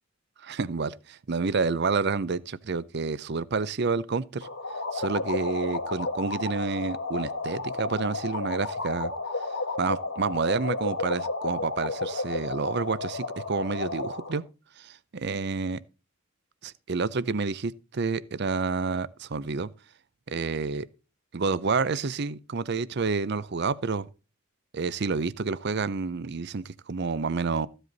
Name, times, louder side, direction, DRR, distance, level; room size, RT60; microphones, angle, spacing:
voice 1, 0.4-4.5 4.9-9.1 9.8-14.5 14.8-15.8 16.6-19.7 20.3-20.9 21.3-24.1 24.7-27.7, right 4 dB, 50° right, 0.6 m, -29 dB
sound 1, 4.4-14.4, left 3 dB, 70° left, 1.8 m, -32 dB
14.5 x 8.0 x 3.9 m
head